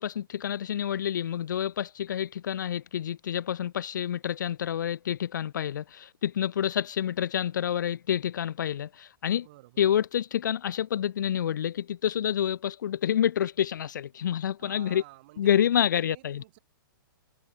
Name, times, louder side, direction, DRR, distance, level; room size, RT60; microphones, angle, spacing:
voice 1, 0.0-9.5 9.8-15.0 15.4-16.4, left 9 dB, 55° left, 0.4 m, -28 dB
voice 2, 9.4-9.8 14.6-16.6, right 19 dB, 30° right, 2.6 m, -51 dB
hypercardioid pair, 180°, 12 cm